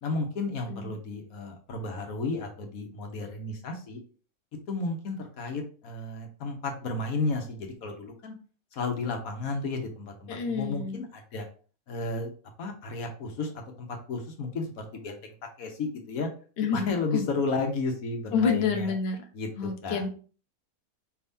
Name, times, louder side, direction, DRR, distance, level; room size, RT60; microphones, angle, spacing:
voice 1, 0.0-4.0 4.7-8.4 8.7-11.5 11.9-12.3 12.6-13.5 13.8-15.2 15.6-16.3 16.7-18.9 19.3-20.0, left 3 dB, 70° left, 4 dB, 1.3 m, -33 dB
voice 2, 10.3-11.0 16.6-17.3 18.3-19.2 19.6-20.1, left 5 dB, 50° left, 3 dB, 0.9 m, -28 dB
5.1 x 3.5 x 2.7 m, 0.39 s
omnidirectional pair, 1.6 m